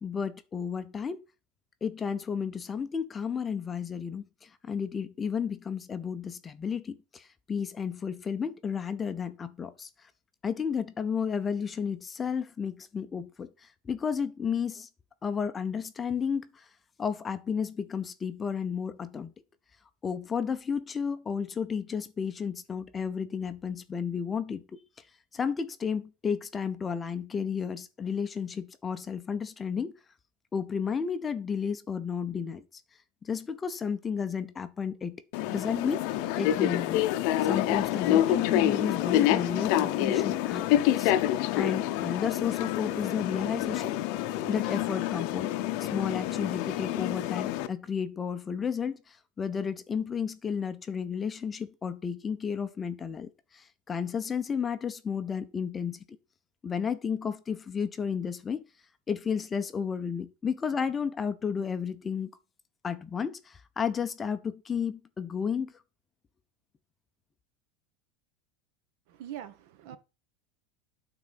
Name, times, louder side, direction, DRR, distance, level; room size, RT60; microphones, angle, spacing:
voice 1, 0.0-1.2 1.8-10.1 10.4-14.9 15.2-16.7 17.0-19.3 20.0-24.8 25.3-29.9 30.5-32.8 33.2-37.0 37.4-43.9 44.5-45.5 45.8-56.0 56.6-58.6 59.1-62.3 62.8-65.7, left 6 dB, 15° left, 0.6 m, -32 dB
sound 1, 35.3-47.7, left 12 dB, 55° left, 0.7 m, -27 dB
voice 2, 69.1-70.0, right 11 dB, 60° right, 1.1 m, -42 dB
9.3 x 3.9 x 5.7 m
supercardioid pair, 155°, 0 cm